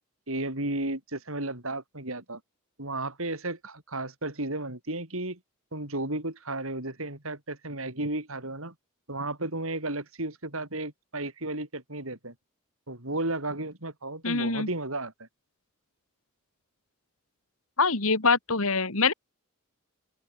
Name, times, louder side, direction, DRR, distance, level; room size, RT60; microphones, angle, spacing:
voice 1, 0.3-2.4 2.8-5.4 5.7-8.7 9.1-12.3 12.9-15.3, right 2 dB, 70° right, 5.6 m, -33 dB
voice 2, 14.2-14.7 17.8-19.1, left 4 dB, 70° left, 2.4 m, -24 dB
open air
head